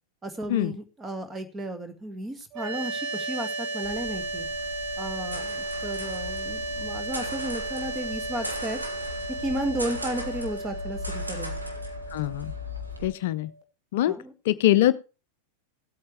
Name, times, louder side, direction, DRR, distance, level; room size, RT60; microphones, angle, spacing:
voice 1, 0.2-4.5 5.0-8.8 9.4-11.5 14.1-14.3, right 1 dB, 15° right, 10 dB, 2.0 m, -34 dB
sound 1, 2.5-13.6, right 2 dB, 40° right, 2.5 m, -34 dB
sound 2, 3.8-13.1, left 1 dB, 85° right, 2.2 m, -38 dB
voice 2, 12.1-12.5 13.0-13.5 13.9-14.2 14.5-14.9, left 14 dB, 55° left, 16 dB, 0.5 m, -23 dB
16.5 x 8.6 x 3.4 m, 0.32 s
figure-of-eight pair, 90°, 0 cm